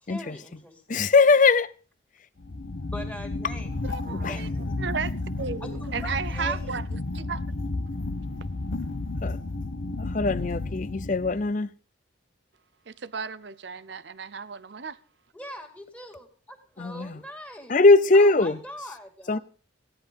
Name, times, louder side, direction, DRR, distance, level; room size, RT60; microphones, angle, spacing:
voice 1, 0.0-1.0 2.9-4.7 5.6-6.8 15.3-17.8 18.1-19.4, left 1 dB, 5° left, 2.3 m, -42 dB
voice 2, 0.9-1.7 4.2-4.4 9.2-9.4 10.0-11.7 16.8-17.1 17.7-18.6 19.3-19.4, left 3 dB, 40° left, 0.6 m, -20 dB
sound 1, 2.4-11.5, left 2 dB, 85° left, 1.0 m, -32 dB
voice 3, 3.8-4.5 4.8-5.1 5.4-7.4 12.9-15.0, right 6 dB, 60° right, 0.7 m, -34 dB
16.0 x 10.5 x 5.3 m
head